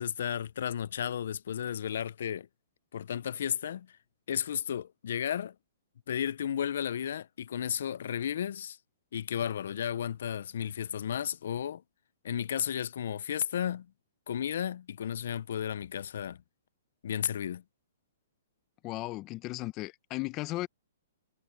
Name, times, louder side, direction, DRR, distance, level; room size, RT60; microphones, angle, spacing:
voice 1, 0.0-2.5 2.9-3.9 4.3-5.5 6.1-8.8 9.1-11.8 12.2-13.9 14.3-16.4 17.0-17.6, left 9 dB, 65° left, 0.5 m, -33 dB
voice 2, 18.8-20.7, left 19 dB, 25° left, 1.0 m, -36 dB
hypercardioid pair, 150°, 0 cm